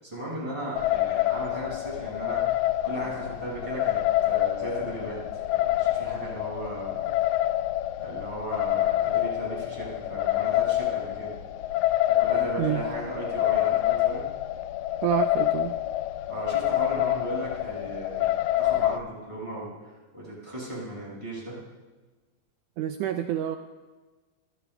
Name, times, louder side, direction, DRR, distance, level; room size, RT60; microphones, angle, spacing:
voice 1, 0.0-2.4 2.8-5.2 5.5-7.1 8.0-11.3 12.1-14.2 16.3-21.6, right 1 dB, 10° right, -7 dB, 6.5 m, -36 dB
sound 1, 0.8-19.0, left 14 dB, 80° left, 2.0 m, -27 dB
voice 2, 15.0-15.8 22.8-23.6, right 12 dB, 90° right, 8 dB, 1.7 m, -28 dB
25.5 x 15.0 x 3.4 m, 1.3 s
omnidirectional pair, 4.2 m